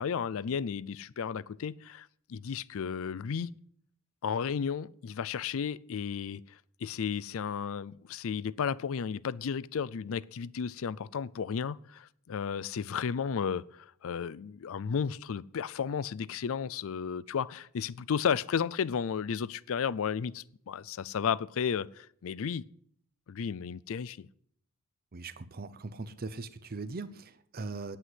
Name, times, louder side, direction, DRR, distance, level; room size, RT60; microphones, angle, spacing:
voice 1, 0.0-3.5 4.2-22.7 23.3-24.3, left 7 dB, 65° left, 0.4 m, -33 dB
voice 2, 25.1-28.0, right 3 dB, 45° right, 0.7 m, -40 dB
9.4 x 9.0 x 8.0 m
head